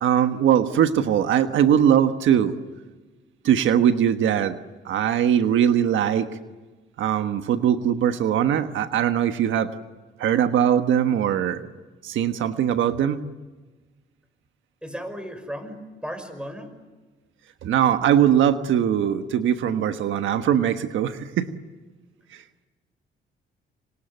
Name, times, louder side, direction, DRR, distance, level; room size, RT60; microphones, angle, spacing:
voice 1, 0.0-2.5 3.4-4.6 4.8-6.3 7.0-9.7 10.2-11.6 12.0-13.2 17.6-21.5 22.3-22.4, right 9 dB, 85° right, 9 dB, 1.3 m, -21 dB
voice 2, 14.8-16.7, equal, 5° right, 9 dB, 5.5 m, -35 dB
27.5 x 26.0 x 8.1 m, 1.3 s
cardioid pair, 95°, 20 cm